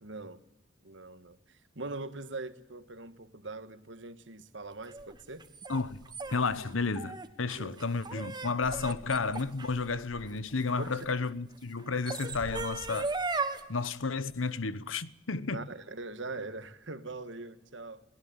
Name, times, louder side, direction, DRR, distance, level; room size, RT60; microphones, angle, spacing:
voice 1, 0.0-0.4 0.8-1.4 1.8-5.4 7.6-7.8 9.2-9.3 10.8-11.0 15.5-18.0, right 3 dB, 65° right, 1.6 m, -42 dB
sound 1, 4.9-11.0 11.8-13.6, right 3 dB, 20° right, 1.5 m, -37 dB
voice 2, 5.7-6.0 6.3-13.1 13.7-15.7, left 4 dB, 90° left, 1.0 m, -32 dB
22.0 x 18.5 x 8.9 m
head